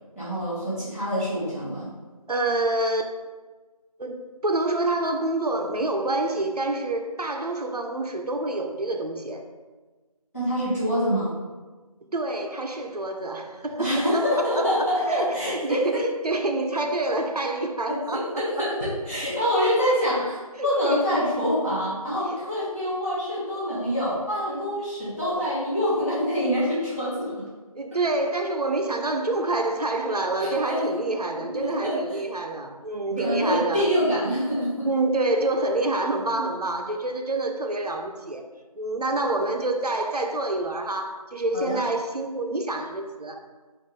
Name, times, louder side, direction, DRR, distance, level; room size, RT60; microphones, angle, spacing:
voice 1, 0.1-1.9 10.3-11.4 13.8-16.0 17.9-27.5 30.4-30.8 31.6-32.2 33.2-34.9 41.5-41.8, equal, 25° left, -14 dB, 1.2 m, -26 dB
voice 2, 2.3-3.1 4.0-9.4 12.1-18.7 20.6-21.1 22.3-22.4 27.7-33.9 34.8-38.5 38.8-43.5, right 2 dB, 80° right, 4 dB, 0.6 m, -27 dB
5.0 x 2.5 x 3.3 m, 1.3 s
figure-of-eight pair, 175°, 20 cm